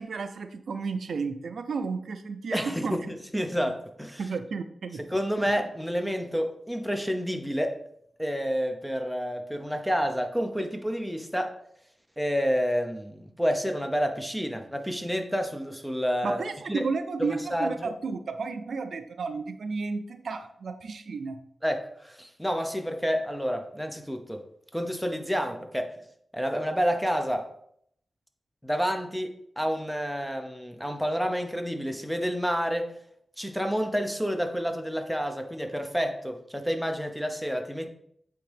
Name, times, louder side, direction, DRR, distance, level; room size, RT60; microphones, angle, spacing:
voice 1, 0.0-3.0 4.2-5.0 5.4-5.5 16.2-21.4, right 4 dB, 80° right, 9 dB, 0.4 m, -32 dB
voice 2, 2.5-4.3 4.9-7.8 8.2-11.5 12.2-16.4 16.7-16.9 17.2-17.9 21.6-24.4 24.7-26.0 26.3-27.5 28.6-32.9 33.4-37.9, equal, ahead, 5 dB, 0.7 m, -29 dB
8.3 x 3.6 x 3.4 m, 0.70 s
wide cardioid pair, 85°, 0 cm